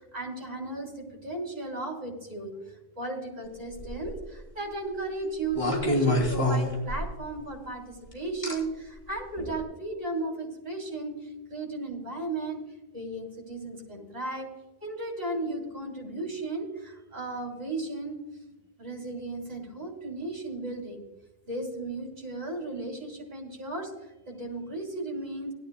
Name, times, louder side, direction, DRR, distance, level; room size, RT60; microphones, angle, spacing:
voice 1, 0.0-2.5 3.0-12.6 12.9-14.5 14.8-18.2 18.8-21.0 21.5-23.9 24.3-25.5, right 2 dB, 90° right, -1 dB, 3.2 m, -35 dB
sound 1, 3.7-4.2 5.5-7.3 8.4-8.5 9.4-9.6, left 1 dB, 35° left, 3.1 m, -26 dB
18.0 x 12.0 x 2.3 m, 1.0 s
omnidirectional pair, 1.0 m